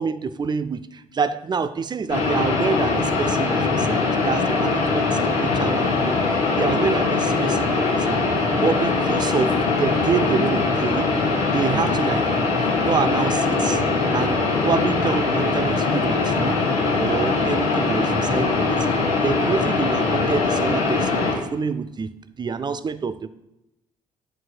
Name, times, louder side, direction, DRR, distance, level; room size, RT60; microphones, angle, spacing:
voice 1, 0.0-11.1 11.5-12.3 12.8-13.8 14.1-16.7 17.0-18.9 19.2-22.1 22.4-23.3, right 5 dB, 25° right, 0.4 m, -27 dB
sound 1, 2.1-21.3, left 3 dB, 80° left, 1.5 m, -21 dB
12.5 x 4.6 x 2.2 m
figure-of-eight pair, 45°, 19 cm